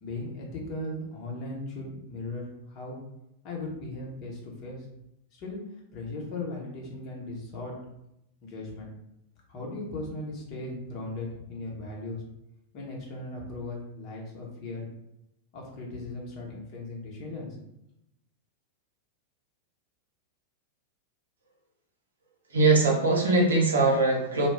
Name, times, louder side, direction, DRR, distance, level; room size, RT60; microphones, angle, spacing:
voice 1, 0.0-3.0 3.4-4.8 5.3-5.6 5.9-7.7 8.4-8.9 9.5-12.2 12.7-14.9 15.5-17.6, left 2 dB, 40° left, -2 dB, 0.9 m, -37 dB
voice 2, 22.5-24.5, right 3 dB, 70° right, -1 dB, 0.6 m, -21 dB
2.2 x 2.2 x 3.4 m, 0.82 s
figure-of-eight pair, 90°, 0 cm